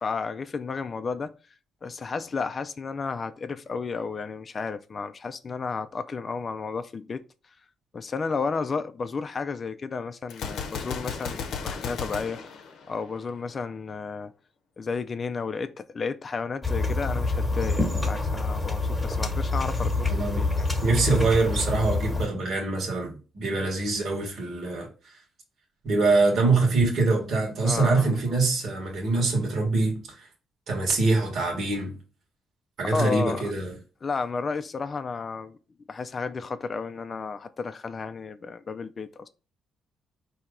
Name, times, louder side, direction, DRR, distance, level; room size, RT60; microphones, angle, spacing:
voice 1, 0.0-1.3 1.8-7.2 7.9-12.4 12.9-14.3 14.8-20.7 27.6-28.1 32.9-33.4 34.0-35.6 35.9-39.3, left 4 dB, 40° left, 0.3 m, -32 dB
Gunshot gunfire, 10.3-13.4, left 6 dB, 75° left, 0.7 m, -35 dB
sound 1, 16.6-22.3, left 3 dB, 10° left, 1.2 m, -26 dB
voice 2, 20.1-20.5 20.8-24.9 25.8-30.3 30.7-32.0 32.8-33.8, right 3 dB, 60° right, 1.5 m, -24 dB
4.4 x 2.8 x 3.7 m
cardioid pair, 90°, 0 cm